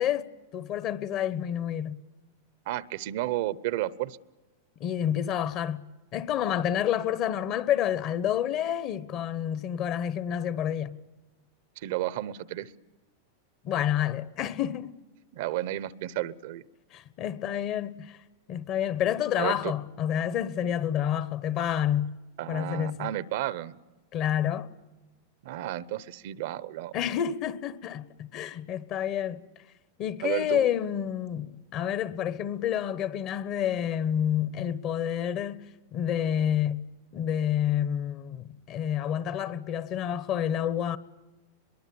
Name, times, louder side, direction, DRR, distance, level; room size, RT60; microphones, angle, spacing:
voice 1, 0.0-2.0 4.8-5.8 6.1-11.0 13.6-14.9 16.9-18.2 18.5-22.2 22.5-23.1 24.1-24.7 26.9-29.4 30.0-41.0, left 10 dB, 40° left, 1.1 m, -29 dB
voice 2, 2.7-4.2 11.8-12.7 15.3-16.6 19.4-19.7 22.4-23.8 25.4-26.9 30.2-30.7, right 14 dB, 65° right, 0.8 m, -32 dB
23.0 x 22.0 x 8.6 m
hypercardioid pair, 125°, 0 cm